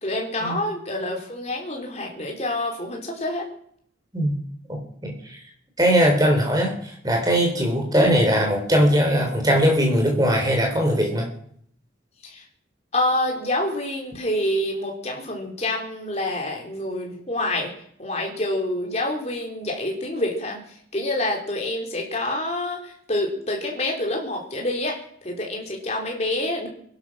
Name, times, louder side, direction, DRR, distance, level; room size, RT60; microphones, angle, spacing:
voice 1, 0.0-3.5 12.2-12.4 12.9-17.7 18.0-26.7, left 1 dB, 35° left, 1 dB, 3.5 m, -27 dB
voice 2, 4.7-5.4 5.8-11.3, equal, 20° right, 2 dB, 3.6 m, -20 dB
20.5 x 11.5 x 6.2 m, 0.66 s
head